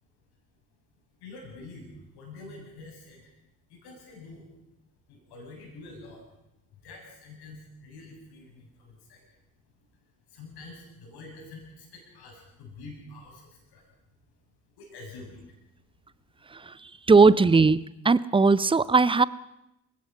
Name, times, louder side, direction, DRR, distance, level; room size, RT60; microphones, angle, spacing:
voice 1, 1.2-3.3 3.7-4.5 5.1-6.2 6.7-9.3 10.3-13.9 14.8-15.6, left 3 dB, 60° left, 1 dB, 7.3 m, -46 dB
voice 2, 16.5-19.2, right 4 dB, 10° right, 19 dB, 0.7 m, -19 dB
28.5 x 17.0 x 5.5 m, 0.87 s
figure-of-eight pair, 45°, 43 cm